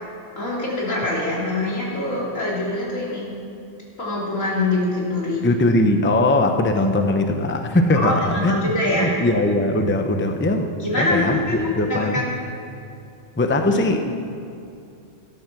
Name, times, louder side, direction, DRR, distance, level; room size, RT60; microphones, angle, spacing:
voice 1, 0.4-3.3 4.0-5.4 7.9-9.1 10.8-12.4, left 2 dB, 85° left, -5 dB, 3.5 m, -24 dB
voice 2, 5.4-8.7 9.0-10.7 11.0-11.4 11.7-12.2 13.4-14.1, left 2 dB, 10° left, 5 dB, 0.6 m, -20 dB
13.5 x 10.0 x 6.1 m, 2.6 s
omnidirectional pair, 1.3 m